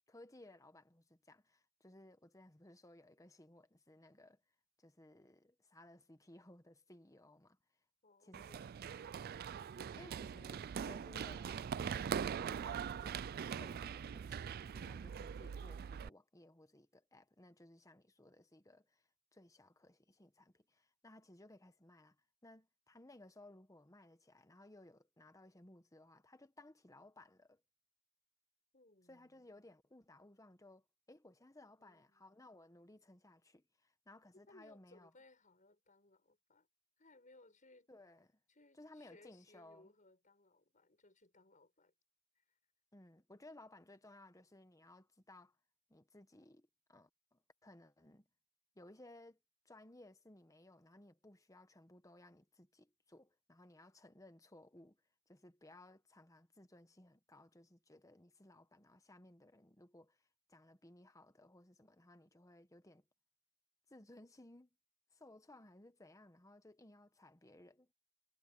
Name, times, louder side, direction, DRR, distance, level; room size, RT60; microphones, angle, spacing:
voice 1, 0.1-4.4 4.8-7.6 8.2-8.5 8.8-9.1 10.0-22.2 22.4-27.6 29.1-35.1 37.9-38.4 38.8-39.9 42.9-45.6 45.9-48.3 48.7-49.4 49.6-55.0 55.3-63.0 63.9-64.7 65.1-67.9, left 1 dB, 15° left, 1.2 m, -60 dB
voice 2, 8.0-8.9 28.7-29.4 31.8-32.3 34.5-36.7 37.0-37.9 38.5-41.9 42.4-42.6, left 2 dB, 35° left, 7.2 m, -65 dB
Run, 8.3-16.1, right 7 dB, 45° right, 0.3 m, -42 dB
head